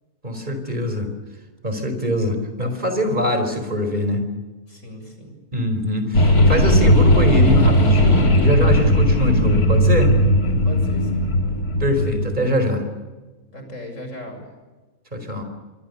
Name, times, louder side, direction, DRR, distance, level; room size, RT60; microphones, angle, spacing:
voice 1, 0.2-1.1 1.6-4.2 5.5-10.2 11.8-12.8 15.1-15.4, equal, 30° right, 8 dB, 4.8 m, -23 dB
voice 2, 4.7-5.4 10.6-11.4 13.5-14.4, left 1 dB, 60° left, 4 dB, 7.6 m, -37 dB
sound 1, 6.1-12.4, left 1 dB, 85° left, 3.5 m, -16 dB
27.0 x 24.5 x 6.9 m, 1.2 s
omnidirectional pair, 1.5 m